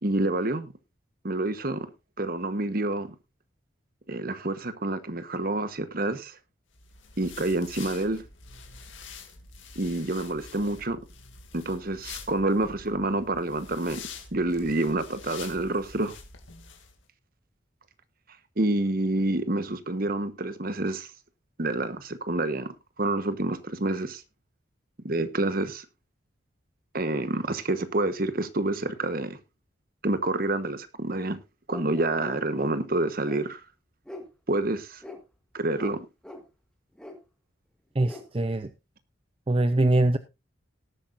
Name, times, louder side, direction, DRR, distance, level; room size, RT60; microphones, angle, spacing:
voice 1, 0.0-0.7 1.2-1.9 2.2-3.1 4.1-6.4 7.2-8.2 9.7-11.0 11.5-14.0 14.3-16.1 18.6-21.1 21.6-22.7 23.0-24.2 25.0-25.8 26.9-29.4 30.0-31.4 31.7-33.6 34.5-35.0 35.5-36.0, right 2 dB, 50° right, 1.2 m, -28 dB
sound 1, 6.7-16.9, left 5 dB, 80° left, 2.4 m, -46 dB
sound 2, 31.7-32.7 33.3-33.4 34.1-34.3 35.0-35.2 35.8-36.0 36.2-36.4 37.0-37.1 38.1-38.2, left 1 dB, 5° left, 1.7 m, -41 dB
voice 2, 37.9-38.7 39.5-40.2, right 2 dB, 30° right, 0.5 m, -23 dB
18.5 x 8.6 x 2.6 m
head